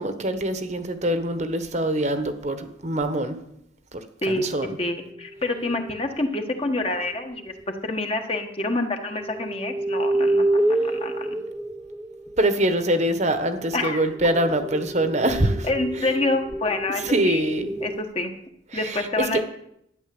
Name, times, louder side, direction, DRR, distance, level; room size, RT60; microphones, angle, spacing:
voice 1, 0.0-3.4 3.9-4.0 4.3-4.7 12.4-15.7 17.0-17.7 18.7-19.4, right 1 dB, 35° right, 9 dB, 1.2 m, -24 dB
voice 2, 4.2-4.5 4.8-7.5 7.8-11.4 13.7-14.0 15.6-17.4 17.8-18.3 18.7-19.4, left 2 dB, 30° left, 5 dB, 1.4 m, -27 dB
sound 1, 5.2-6.1 7.6-7.7 9.1-12.7 13.6-18.0, right 1 dB, 5° right, 0.4 m, -28 dB
12.5 x 9.8 x 7.8 m, 0.76 s
head